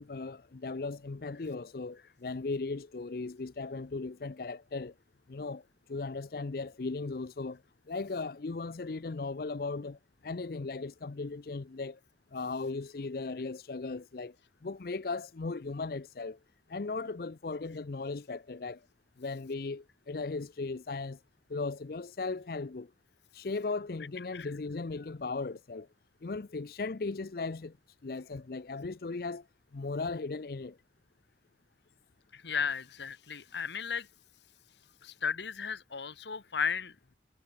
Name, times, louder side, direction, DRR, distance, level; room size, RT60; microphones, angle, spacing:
voice 1, 0.0-4.9 5.3-5.6 5.9-7.6 7.9-12.0 12.3-14.3 14.6-16.4 16.7-18.8 19.2-21.2 21.5-22.9 23.3-25.9 26.2-27.7 28.0-29.4 29.7-30.8, left 3 dB, 55° left, 0.5 m, -37 dB
voice 2, 32.3-34.1 35.0-36.9, left 6 dB, 75° left, 1.3 m, -34 dB
head